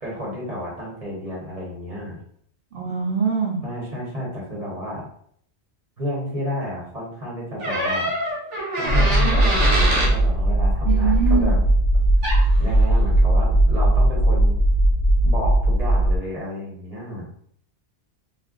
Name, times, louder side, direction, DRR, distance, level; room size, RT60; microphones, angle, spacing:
voice 1, 0.0-2.2 3.6-5.0 6.0-8.1 8.8-11.6 12.6-14.6 15.2-17.3, equal, 35° right, -5 dB, 0.9 m, -31 dB
voice 2, 2.7-3.6 10.8-11.5, right 5 dB, 60° right, -4 dB, 0.6 m, -23 dB
sound 1, 7.6-10.1 12.2-12.4, right 1 dB, 80° right, 1.1 m, -24 dB
sound 2, 8.9-16.2, right 1 dB, 80° left, 1.0 m, -18 dB
2.4 x 2.1 x 3.6 m, 0.64 s
omnidirectional pair, 1.2 m